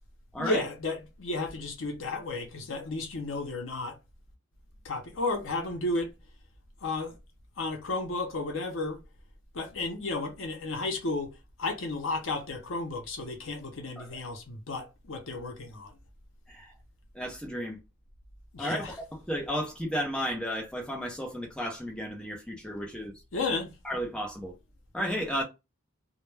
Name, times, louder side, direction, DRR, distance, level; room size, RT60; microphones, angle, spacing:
voice 1, 0.4-4.0 4.8-6.1 6.8-7.2 7.6-9.0 9.5-16.0 18.5-18.9 23.3-23.7, left 2 dB, 70° left, 0.6 m, -33 dB
voice 2, 17.1-17.8 18.6-18.9 19.3-23.1 23.8-24.6 24.9-25.4, equal, 5° left, 0.5 m, -33 dB
2.2 x 2.1 x 3.1 m
head